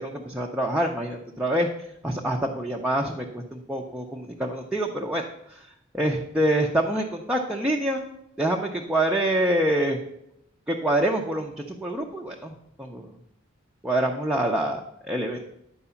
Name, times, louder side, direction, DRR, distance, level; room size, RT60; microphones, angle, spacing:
voice 1, 0.0-1.7 2.0-5.7 5.9-8.0 8.4-10.0 10.7-13.1 13.8-15.5, right 1 dB, 5° right, -1 dB, 0.6 m, -26 dB
9.8 x 4.7 x 7.0 m, 0.79 s
head